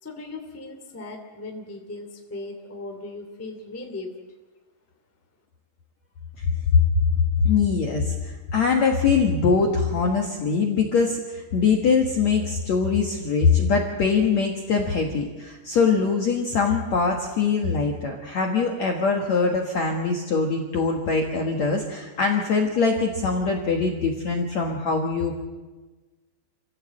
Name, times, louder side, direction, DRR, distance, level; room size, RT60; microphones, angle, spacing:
voice 1, 0.0-4.1, left 2 dB, 5° left, 3 dB, 1.5 m, -37 dB
voice 2, 7.4-25.3, left 5 dB, 55° left, 1 dB, 2.1 m, -23 dB
27.5 x 16.0 x 7.7 m, 1.3 s
omnidirectional pair, 5.0 m